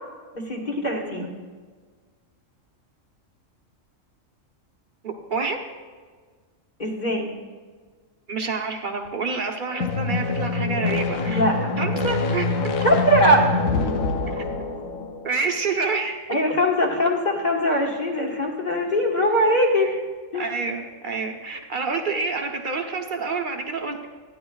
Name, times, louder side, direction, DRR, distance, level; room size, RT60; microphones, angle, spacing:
voice 1, 0.3-1.3 6.8-7.3 11.3-11.8 12.8-13.5 16.3-19.9 20.3-20.4, equal, 35° left, -1 dB, 1.5 m, -21 dB
voice 2, 5.0-5.6 8.3-11.5 11.8-12.6 14.3-14.5 15.2-16.2 19.8-19.9 20.3-24.1, right 4 dB, 45° right, 3 dB, 1.0 m, -28 dB
sound 1, 9.7-15.3, left 3 dB, 90° left, 1.1 m, -25 dB
14.0 x 10.5 x 2.3 m, 1.5 s
omnidirectional pair, 1.3 m